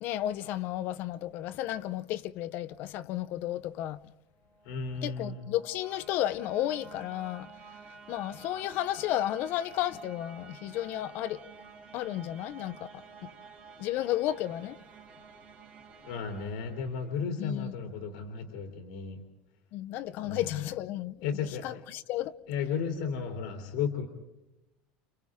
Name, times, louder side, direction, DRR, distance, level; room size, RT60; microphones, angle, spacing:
voice 1, 0.0-4.0 5.0-7.5 8.1-11.4 11.9-12.9 13.8-14.8 17.4-17.7 19.7-21.2 21.6-22.3, left 13 dB, 50° left, 0.7 m, -33 dB
sound 1, 4.3-17.4, right 5 dB, 35° right, 3.3 m, -51 dB
voice 2, 4.6-5.5 16.0-19.2 20.2-20.4 21.2-21.6 22.5-24.1, left 6 dB, 75° left, 3.1 m, -34 dB
30.0 x 30.0 x 3.6 m
cardioid pair, 160°, 4 cm